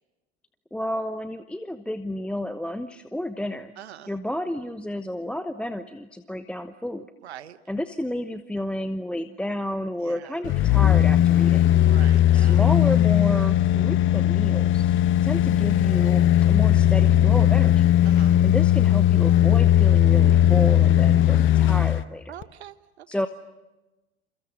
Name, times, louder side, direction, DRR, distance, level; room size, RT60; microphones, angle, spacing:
voice 1, 0.7-3.7 4.1-7.1 7.7-11.7 12.3-17.9 18.4-22.3 23.1-23.3, left 1 dB, 5° left, 11 dB, 0.9 m, -31 dB
voice 2, 3.8-4.1 7.2-7.6 10.0-10.2 11.8-12.6 18.0-18.4 22.3-23.1, right 11 dB, 70° right, 13 dB, 1.4 m, -43 dB
sound 1, 10.4-22.0 22.4-22.5, left 12 dB, 35° left, 1.1 m, -18 dB
29.0 x 28.5 x 6.4 m, 1.1 s
figure-of-eight pair, 75°, 34 cm